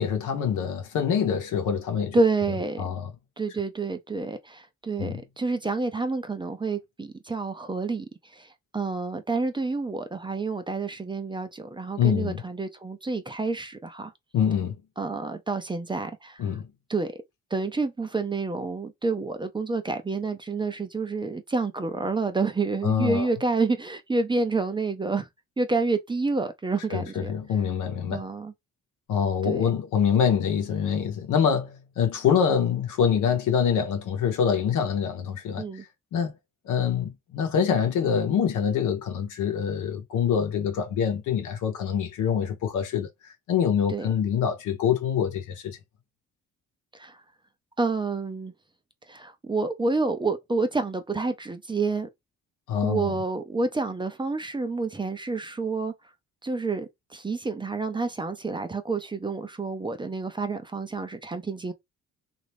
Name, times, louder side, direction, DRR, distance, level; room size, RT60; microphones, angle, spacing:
voice 1, 0.0-2.2 2.8-3.1 5.0-5.2 12.0-12.4 14.3-14.8 16.4-16.7 22.8-23.3 26.9-28.2 29.1-35.9 36.1-36.3 36.6-43.1 43.5-45.8 52.7-53.1, left 7 dB, 80° left, 0.9 m, -25 dB
voice 2, 2.1-2.8 3.4-14.1 15.0-16.4 16.9-17.2 17.5-25.3 25.6-27.3 28.1-28.5 29.4-29.6 35.6-35.8 43.9-44.1 46.9-47.2 47.8-48.5 49.1-52.1 52.8-55.9 56.4-61.7, right 3 dB, 15° right, 0.5 m, -29 dB
3.0 x 2.5 x 3.3 m
cardioid pair, 90°, 30 cm